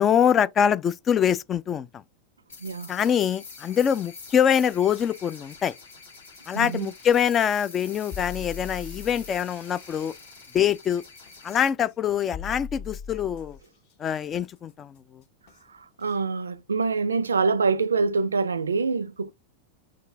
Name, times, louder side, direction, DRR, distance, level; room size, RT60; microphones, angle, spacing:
voice 1, 0.0-2.0 2.9-5.7 6.5-10.1 10.5-11.0 11.4-13.6 14.0-15.2, left 8 dB, 25° left, 0.3 m, -24 dB
sound 1, 2.5-11.7, left 4 dB, 65° left, 1.8 m, -46 dB
voice 2, 2.6-2.9 6.5-6.9 16.0-19.3, right 4 dB, 75° right, 0.4 m, -25 dB
sound 2, 8.1-9.4 11.3-11.4 12.3-13.7 15.5-15.6 16.1-16.2, left 6 dB, 50° left, 1.0 m, -38 dB
4.8 x 2.5 x 3.4 m
figure-of-eight pair, 90°, 0 cm